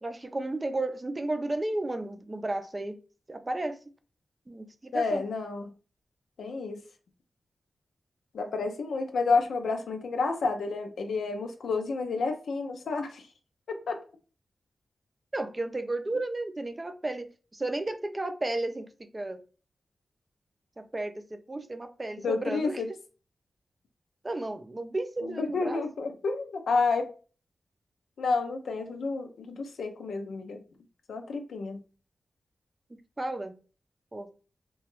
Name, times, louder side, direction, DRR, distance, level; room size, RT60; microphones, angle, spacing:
voice 1, 0.0-3.0 3.3-3.8 4.5-5.2 15.3-19.4 20.8-22.8 24.2-25.8 33.2-33.6 34.1-34.3, right 2 dB, 30° right, 0.5 m, -33 dB
voice 2, 4.9-5.7 6.4-6.8 8.3-13.2 13.7-14.0 22.2-22.9 25.2-27.1 28.2-30.6 31.1-31.8, left 4 dB, 90° left, 0.5 m, -30 dB
2.9 x 2.3 x 3.0 m
cardioid pair, 50°, 0 cm